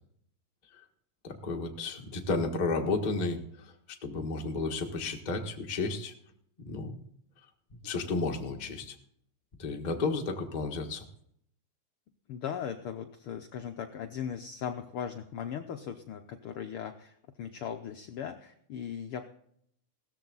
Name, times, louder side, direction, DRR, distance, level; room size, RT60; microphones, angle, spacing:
voice 1, 1.2-6.1 6.6-7.0 7.7-8.9 9.6-11.0, left 3 dB, 35° left, 2 dB, 0.7 m, -32 dB
voice 2, 12.3-19.3, left 8 dB, 85° left, 6 dB, 1.2 m, -38 dB
17.0 x 13.5 x 4.0 m, 0.68 s
omnidirectional pair, 3.5 m